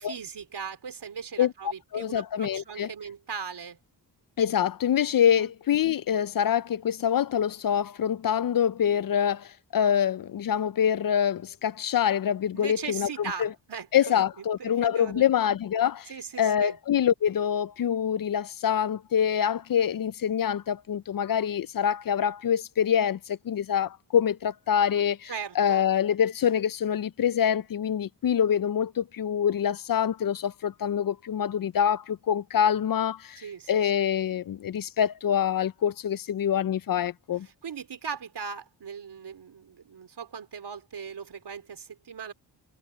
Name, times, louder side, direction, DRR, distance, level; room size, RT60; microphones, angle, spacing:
voice 1, 0.0-3.8 5.4-5.5 12.5-15.3 16.1-16.8 25.3-25.9 33.4-34.1 37.4-42.3, right 6 dB, 60° right, 3.9 m, -39 dB
voice 2, 1.4-2.9 4.4-13.5 13.9-16.1 16.4-37.5, left 9 dB, 50° left, 0.5 m, -25 dB
wide cardioid pair, 120°, 45 cm